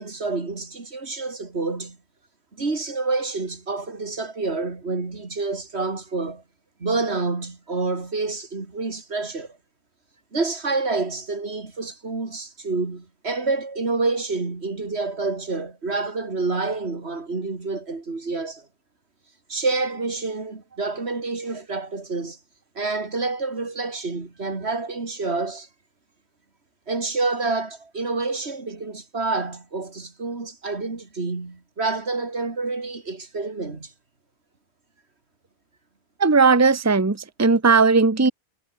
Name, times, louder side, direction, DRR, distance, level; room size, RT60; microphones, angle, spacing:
voice 1, 0.0-2.0 2.5-6.4 6.8-9.6 10.3-18.7 19.5-22.4 22.7-25.7 26.9-33.9, right 3 dB, 85° right, 3.0 m, -28 dB
voice 2, 36.2-38.3, right 4 dB, 15° right, 1.0 m, -17 dB
omnidirectional pair, 1.1 m